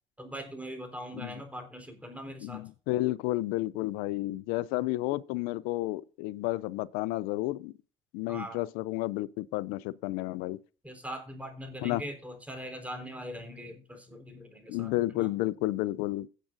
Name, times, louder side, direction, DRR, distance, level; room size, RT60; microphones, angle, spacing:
voice 1, 0.2-2.6 8.3-8.6 10.8-15.3, equal, 10° right, 4.3 m, -41 dB
voice 2, 2.4-7.7 8.1-10.6 11.8-12.0 14.7-16.3, left 18 dB, 85° left, 0.5 m, -31 dB
17.0 x 7.5 x 2.6 m
supercardioid pair, 75°, 15 cm